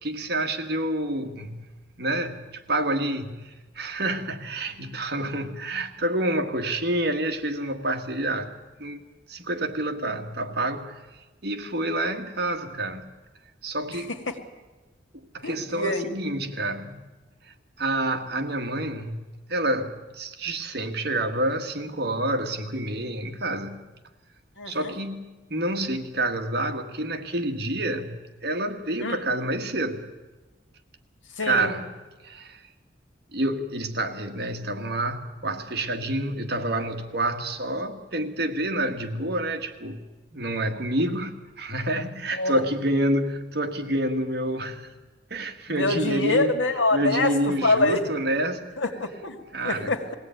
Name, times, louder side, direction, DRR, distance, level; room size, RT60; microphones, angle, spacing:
voice 1, 0.0-8.5 8.8-9.0 9.3-11.1 11.4-13.1 13.6-14.1 15.3-17.1 17.5-23.8 24.7-30.1 31.4-31.9 32.2-32.6 33.3-40.0 40.3-44.9 45.3-46.6 46.9-48.7 49.5-50.1, right 1 dB, 55° right, 5 dB, 1.7 m, -28 dB
voice 2, 15.4-16.1 24.6-25.0 29.0-29.2 31.4-31.7 42.3-42.6 45.7-48.1 48.8-50.1, left 2 dB, 80° left, 6 dB, 2.1 m, -25 dB
21.5 x 16.5 x 9.1 m, 1.2 s
head